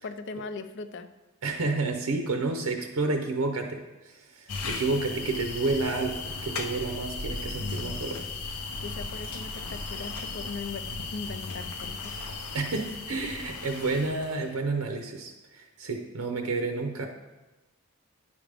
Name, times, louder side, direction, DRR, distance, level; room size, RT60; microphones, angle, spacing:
voice 1, 0.0-1.1 8.8-12.1, left 4 dB, 55° left, 11 dB, 0.4 m, -39 dB
voice 2, 1.4-8.2 12.5-17.1, right 3 dB, 75° right, 4 dB, 0.7 m, -30 dB
sound 1, 4.5-14.5, left 3 dB, 85° left, 0.7 m, -36 dB
10.0 x 5.1 x 3.4 m, 1.1 s
head